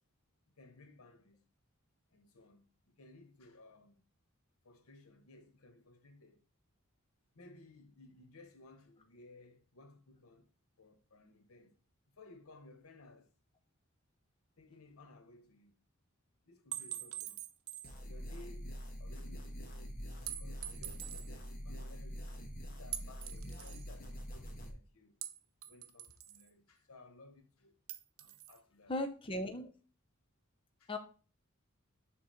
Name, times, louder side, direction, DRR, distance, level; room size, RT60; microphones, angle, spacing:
voice 1, 0.5-1.4 2.1-4.0 4.6-6.4 7.3-10.5 10.8-11.8 12.1-13.3 14.6-15.8 16.5-17.4 18.0-19.9 20.2-22.4 22.7-25.2 25.6-27.8 28.2-28.9 30.8-30.9, left 2 dB, 85° left, 0.9 m, -59 dB
sound 1, 16.7-18.0 18.3-18.4 20.3-21.3 22.9-23.9 25.2-26.5 27.9-28.6, right 12 dB, 75° right, 0.7 m, -44 dB
sound 2, 17.8-24.7, equal, 40° left, 1.4 m, -45 dB
voice 2, 28.9-29.7 30.9-31.0, left 1 dB, 25° left, 0.6 m, -37 dB
6.5 x 3.7 x 4.3 m
head